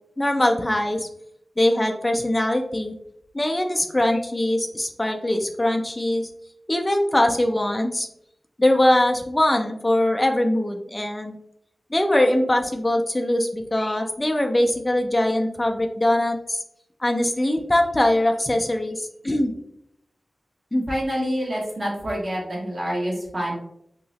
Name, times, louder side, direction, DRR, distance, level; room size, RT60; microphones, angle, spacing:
voice 1, 0.2-1.1 1.6-2.9 3.3-6.3 6.7-8.1 8.6-11.4 11.9-16.6 17.0-19.5 20.7-20.8, left 1 dB, 25° left, 4 dB, 0.4 m, -22 dB
voice 2, 20.9-23.5, equal, 50° right, -3 dB, 1.3 m, -27 dB
3.0 x 2.8 x 2.7 m, 0.76 s
cardioid pair, 45°, 0 cm